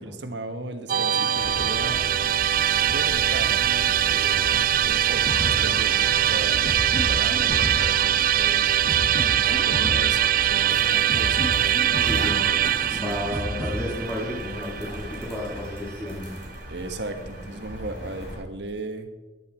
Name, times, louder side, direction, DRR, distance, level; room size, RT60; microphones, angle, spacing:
voice 1, 0.0-2.1 2.8-6.7 7.1-8.9 9.2-11.4 12.9-13.2 16.7-19.1, right 2 dB, 70° right, 7 dB, 1.4 m, -37 dB
Musical instrument, 0.9-16.1, right 11 dB, 50° right, 0.4 m, -23 dB
sound 1, 1.3-18.4, equal, 75° left, 3.9 m, -37 dB
sound 2, 5.3-14.3, equal, 50° left, 2.3 m, -32 dB
voice 2, 12.0-12.5 12.9-16.3, left 1 dB, 5° left, -7 dB, 2.5 m, -32 dB
14.0 x 11.0 x 4.4 m, 1.2 s
head